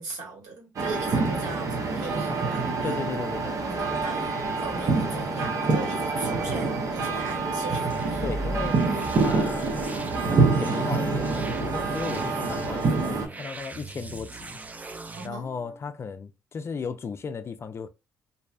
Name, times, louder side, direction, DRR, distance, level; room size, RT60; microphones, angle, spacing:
voice 1, 0.0-3.1 3.6-8.2 15.2-15.8, right 3 dB, 75° right, 1.5 m, -39 dB
sound 1, 0.8-13.3, right 3 dB, 55° right, 0.8 m, -26 dB
voice 2, 2.8-3.6 4.0-4.1 8.2-8.8 9.2-9.9 10.2-14.6 15.2-17.9, left 5 dB, 40° left, 0.4 m, -35 dB
sound 2, 7.9-15.3, right 3 dB, 25° right, 0.4 m, -38 dB
2.6 x 2.1 x 2.5 m
supercardioid pair, 65°, 7 cm